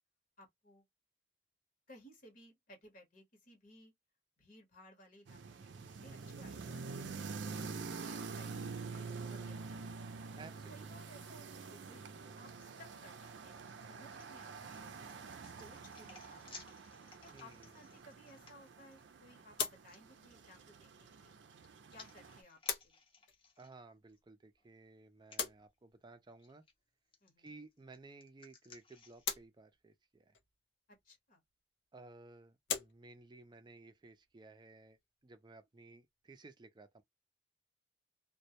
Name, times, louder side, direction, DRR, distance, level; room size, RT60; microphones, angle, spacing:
voice 1, 0.4-0.8 1.9-3.9 4.4-7.5 8.0-10.1 10.7-14.9 15.4-16.7 17.2-19.6 19.8-21.4 21.9-23.0 27.2-27.5 31.0-31.4, left 1 dB, 50° left, 0.9 m, -60 dB
sound 1, 5.3-22.4, right 4 dB, 80° right, 0.5 m, -47 dB
voice 2, 7.5-8.0 10.4-10.9 17.3-17.8 23.6-26.6 27.4-30.4 31.9-37.0, right 3 dB, 25° right, 0.4 m, -56 dB
sound 2, 13.5-19.1 19.9-20.0 21.2-24.2 24.6-24.7 25.2-25.4 26.4-26.7 27.1-29.3, left 4 dB, 30° left, 0.7 m, -60 dB
sound 3, 19.5-36.4, left 7 dB, 75° left, 0.6 m, -47 dB
2.2 x 2.1 x 2.7 m
head